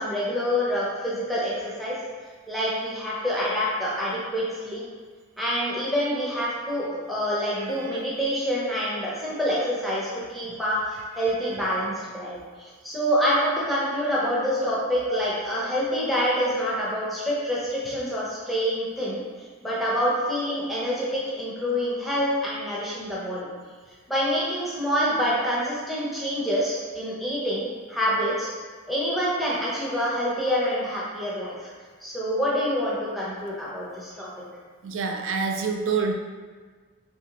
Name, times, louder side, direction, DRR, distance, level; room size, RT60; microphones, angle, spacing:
voice 1, 0.0-2.0 2.5-4.9 5.4-19.2 19.6-23.5 24.1-28.5 28.9-31.7 32.0-34.4, equal, ahead, -8 dB, 0.6 m, -26 dB
voice 2, 7.6-8.0 15.1-15.2 15.5-15.7 34.8-36.1, right 5 dB, 60° right, 4 dB, 0.3 m, -28 dB
3.1 x 2.8 x 2.8 m, 1.5 s
head